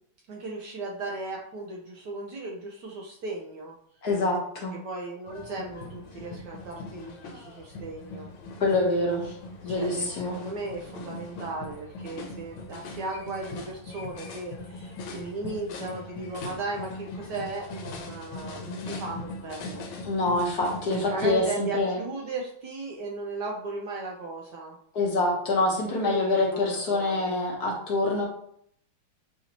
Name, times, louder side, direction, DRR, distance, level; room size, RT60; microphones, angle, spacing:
voice 1, 0.3-3.7 4.7-8.3 9.6-19.8 20.9-24.8 25.9-27.4, right 3 dB, 70° right, -1 dB, 1.1 m, -36 dB
voice 2, 4.0-4.7 8.6-9.3 9.6-10.4 20.0-22.0 24.9-28.3, left 2 dB, 60° left, -2 dB, 1.3 m, -26 dB
sound 1, 5.3-21.5, left 2 dB, 85° left, 1.6 m, -40 dB
7.0 x 2.6 x 2.9 m, 0.67 s
omnidirectional pair, 2.3 m